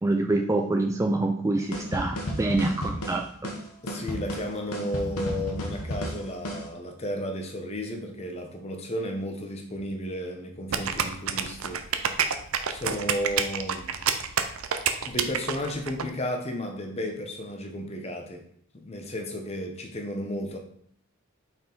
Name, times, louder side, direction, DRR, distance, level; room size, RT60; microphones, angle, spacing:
voice 1, 0.0-3.2, right 2 dB, 15° right, 0.3 m, -25 dB
sound 1, 1.7-6.7, equal, 80° left, 1.2 m, -33 dB
voice 2, 3.8-11.8 12.7-13.9 15.1-18.4 18.7-20.6, equal, 30° left, 0.8 m, -33 dB
sound 2, 10.7-16.0, right 7 dB, 70° right, 0.5 m, -27 dB
5.4 x 4.5 x 3.9 m
head